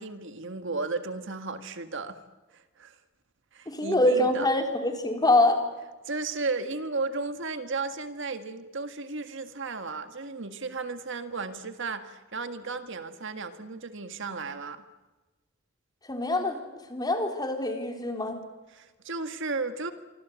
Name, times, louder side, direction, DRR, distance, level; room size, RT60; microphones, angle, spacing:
voice 1, 0.0-2.2 2.5-3.0 3.5-4.5 6.1-14.8 18.7-19.9, right 3 dB, 65° right, 9 dB, 1.8 m, -34 dB
voice 2, 3.7-5.6 16.1-16.6 16.9-18.4, left 1 dB, 20° left, 4 dB, 4.1 m, -24 dB
27.0 x 25.5 x 8.3 m, 1.2 s
head